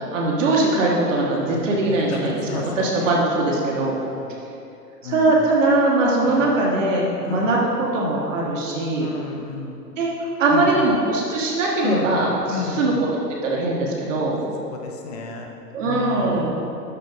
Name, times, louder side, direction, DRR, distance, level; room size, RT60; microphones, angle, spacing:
voice 1, 0.0-4.0 5.0-9.1 10.0-10.1 10.4-14.4 15.7-16.6, right 2 dB, 50° right, -3 dB, 1.5 m, -21 dB
voice 2, 1.5-2.2 2.5-3.1 4.2-4.3 5.0-5.4 6.3-6.6 7.2-7.6 9.0-9.9 10.5-10.8 11.8-12.2 12.5-13.0 14.7-15.5 15.8-16.5, left 4 dB, 25° left, 3 dB, 0.6 m, -32 dB
12.0 x 4.5 x 3.7 m, 2.7 s
figure-of-eight pair, 120°, 50 cm